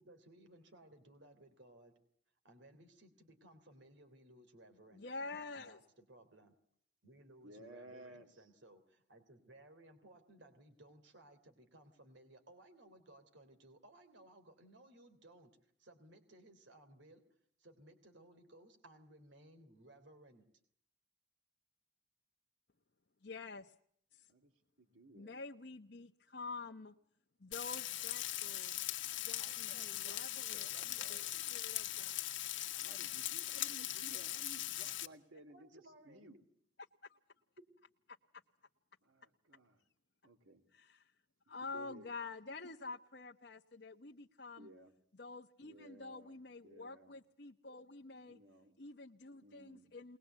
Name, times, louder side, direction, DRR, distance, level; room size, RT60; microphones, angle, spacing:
voice 1, 0.0-1.9 2.4-5.1 5.5-6.6 7.0-17.2 17.6-20.4 29.4-31.4 35.5-36.3 37.6-37.7, right 1 dB, 65° right, 7 dB, 3.3 m, -61 dB
voice 2, 4.9-5.8 23.2-23.7 24.1-24.3 25.1-26.9 27.4-28.8 29.2-31.2 31.5-32.3 33.5-33.6 37.0-37.2 40.7-41.1 41.5-44.7 45.1-48.4 48.8-50.2, left 3 dB, 55° left, 2 dB, 1.0 m, -48 dB
voice 3, 7.4-8.3 24.3-24.5 24.8-25.4 32.7-36.4 39.0-39.8 40.2-40.6 41.6-42.1 44.6-44.9 45.6-47.2 48.3-48.8 49.4-49.9, right 2 dB, 85° right, 4 dB, 2.8 m, -57 dB
Frying (food), 27.5-35.1, left 14 dB, 70° left, 1.3 m, -40 dB
21.5 x 21.0 x 8.1 m, 0.67 s
head